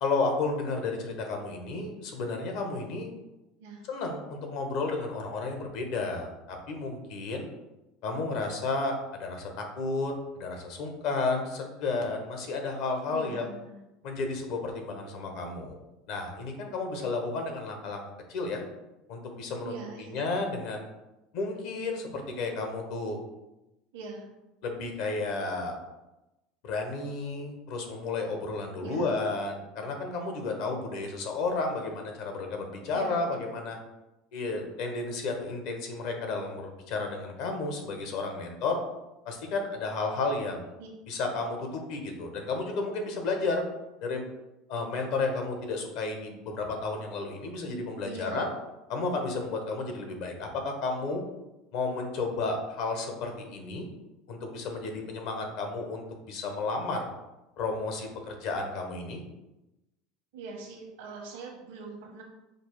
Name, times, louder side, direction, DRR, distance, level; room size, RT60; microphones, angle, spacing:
voice 1, 0.0-3.1 3.9-7.5 8.0-13.5 14.0-15.8 16.1-18.0 18.3-18.6 19.1-19.7 20.0-20.9 21.3-23.2 24.6-25.7 26.6-33.8 34.3-38.8 39.2-40.7 41.1-43.6 44.0-44.2 44.7-48.5 48.9-51.2 51.7-53.8 54.3-57.1 57.6-59.2, left 3 dB, 65° left, 3 dB, 0.9 m, -32 dB
voice 2, 13.1-13.8 19.6-20.1 23.9-24.3 28.8-29.2 32.9-33.3 40.8-40.9 41.2-41.4 48.0-48.4 60.3-62.2, right 4 dB, 85° right, -1 dB, 1.0 m, -42 dB
5.2 x 2.1 x 4.6 m, 0.97 s
supercardioid pair, 130°, 0 cm